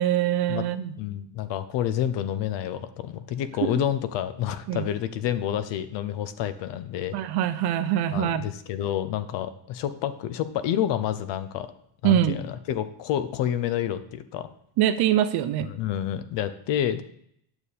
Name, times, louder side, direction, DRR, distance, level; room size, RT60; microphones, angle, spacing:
voice 1, 0.0-0.9 4.7-4.9 7.1-8.4 12.0-12.4 14.8-15.7, right 11 dB, 55° right, 11 dB, 0.7 m, -24 dB
voice 2, 1.0-7.2 8.1-11.7 12.0-14.5 15.6-17.0, left 10 dB, 65° left, 12 dB, 0.8 m, -29 dB
9.8 x 6.9 x 4.2 m, 0.69 s
cardioid pair, 170°, 48 cm